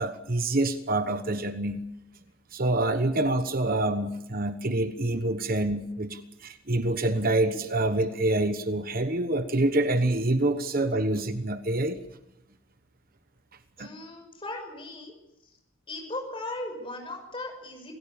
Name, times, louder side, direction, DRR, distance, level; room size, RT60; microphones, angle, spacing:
voice 1, 0.0-1.8 2.5-12.0 13.8-13.9, right 2 dB, 40° right, 9 dB, 1.1 m, -26 dB
voice 2, 13.8-15.1 15.9-17.9, left 2 dB, 25° left, 4 dB, 6.1 m, -37 dB
27.0 x 17.0 x 7.1 m, 0.87 s
head